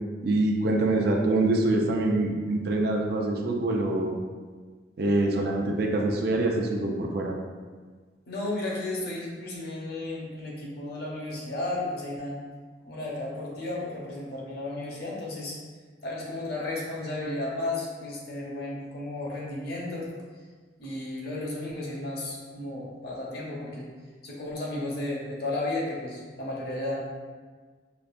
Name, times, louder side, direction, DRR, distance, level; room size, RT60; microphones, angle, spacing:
voice 1, 0.2-4.1 5.0-7.4, right 2 dB, 60° right, 1 dB, 0.4 m, -25 dB
voice 2, 8.3-12.4 12.9-15.5 16.0-20.1 20.8-23.9 24.2-27.0, left 2 dB, 60° left, -4 dB, 0.9 m, -33 dB
5.0 x 2.5 x 2.5 m, 1.5 s
head